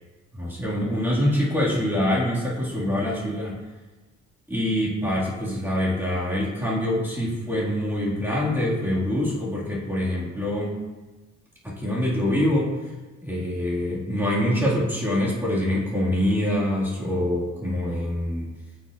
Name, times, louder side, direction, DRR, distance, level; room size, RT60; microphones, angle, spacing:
voice 1, 0.3-3.6 4.5-10.8 11.6-12.8 13.2-18.5, left 1 dB, 5° right, -7 dB, 1.9 m, -25 dB
8.5 x 5.1 x 2.5 m, 1.2 s
cardioid pair, 90°, 30 cm